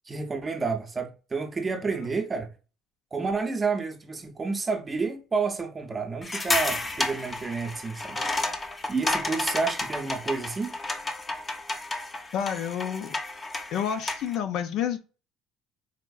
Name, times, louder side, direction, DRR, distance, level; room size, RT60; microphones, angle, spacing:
voice 1, 0.1-2.5 3.1-8.2 8.9-10.8, right 4 dB, 25° right, 0.6 m, -30 dB
sound 1, 6.2-14.4, left 2 dB, 20° left, 0.6 m, -31 dB
voice 2, 12.3-13.1 13.7-15.0, left 9 dB, 65° left, 0.5 m, -29 dB
4.2 x 2.5 x 2.3 m
cardioid pair, 110°, 0 cm